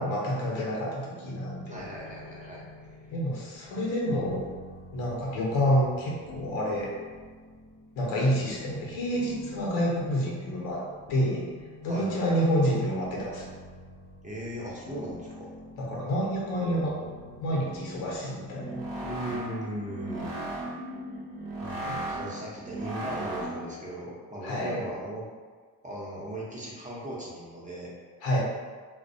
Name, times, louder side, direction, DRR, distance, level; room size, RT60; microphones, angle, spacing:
voice 1, 0.0-1.8 3.1-4.5 4.9-6.9 8.0-11.4 11.8-13.5 15.8-17.0 17.4-18.8 21.8-22.0 24.4-24.8 28.2-28.4, equal, 85° left, -3 dB, 0.8 m, -28 dB
voice 2, 1.6-2.6 3.7-3.8 11.9-12.4 14.2-15.5 19.0-20.3 21.6-25.3 25.8-27.9, right 1 dB, 15° right, -6 dB, 0.6 m, -38 dB
sound 1, 1.7-20.7, left 1 dB, 45° left, 0.4 m, -47 dB
sound 2, 18.5-23.8, right 1 dB, 75° right, 0.8 m, -36 dB
2.3 x 2.1 x 2.6 m, 1.5 s
cardioid pair, 85°, 44 cm